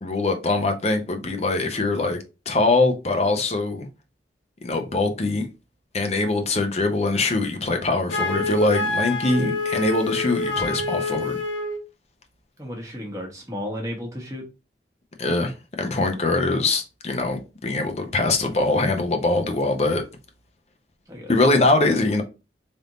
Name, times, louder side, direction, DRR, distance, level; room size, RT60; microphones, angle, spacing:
voice 1, 0.0-2.2 2.5-3.9 4.6-5.5 5.9-11.3 15.2-20.0 21.3-22.2, left 2 dB, 35° left, 0.6 m, -22 dB
Wind instrument woodwind instrument, 8.1-11.8, left 3 dB, 85° left, 1.0 m, -27 dB
voice 2, 12.6-14.4 21.1-21.3, equal, 20° right, 1.2 m, -33 dB
3.5 x 2.6 x 4.0 m
head